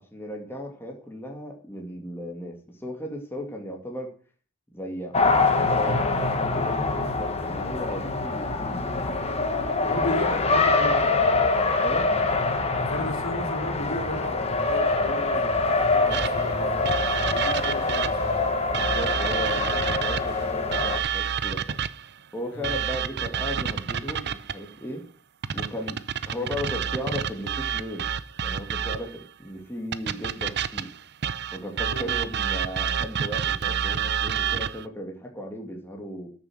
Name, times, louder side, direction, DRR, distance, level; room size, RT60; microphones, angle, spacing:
voice 1, 0.1-4.1 4.7-8.9 9.8-10.4 11.8-12.1 18.7-21.8 22.3-25.1 25.5-26.0 26.3-28.1 28.4-30.9 31.5-36.3, equal, 10° left, 2.3 m, -36 dB
Race car auto racing, 5.1-21.0, left 3 dB, 30° left, 1.5 m, -24 dB
voice 2, 9.9-11.1 12.7-18.4 22.5-22.8 31.9-32.1, left 1 dB, 65° left, 3.6 m, -34 dB
sound 1, 16.1-18.3 18.7-22.1 22.6-24.7 25.4-29.2 29.9-34.9, right 8 dB, 55° right, 0.7 m, -29 dB
13.0 x 7.1 x 6.4 m
head